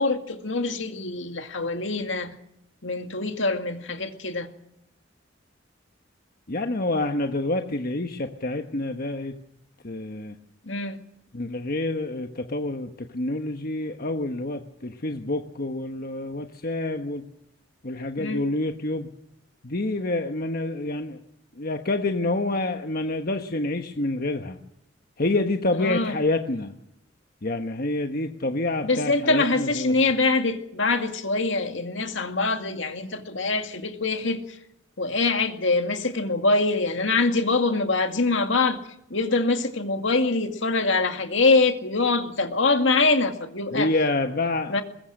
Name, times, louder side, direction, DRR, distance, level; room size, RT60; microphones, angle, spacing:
voice 1, 0.0-2.3 2.8-4.5 10.7-11.0 18.2-18.5 25.8-26.1 28.8-34.4 35.0-38.8 39.1-43.9 44.7-44.8, left 3 dB, 70° left, 2.2 m, -24 dB
voice 2, 6.5-9.3 9.8-10.3 11.3-17.2 17.8-19.1 19.6-21.2 21.6-24.6 25.2-26.7 27.4-29.9 43.7-44.8, left 2 dB, 50° left, 1.2 m, -27 dB
22.0 x 21.0 x 6.5 m
head